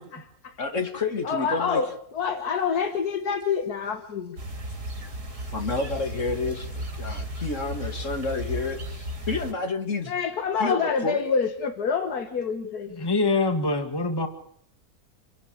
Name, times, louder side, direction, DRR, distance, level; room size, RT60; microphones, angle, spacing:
voice 1, 0.0-0.6 1.2-4.4 10.1-12.9, left 6 dB, 80° left, 6 dB, 2.0 m, -27 dB
voice 2, 0.6-1.8 5.5-10.1 10.6-11.2, left 3 dB, 50° left, 6 dB, 2.7 m, -30 dB
sound 1, 4.4-9.5, equal, 80° right, 4.1 m, -34 dB
voice 3, 13.0-14.3, left 3 dB, 15° left, 6 dB, 1.9 m, -24 dB
28.0 x 11.5 x 8.7 m, 0.65 s
omnidirectional pair, 1.6 m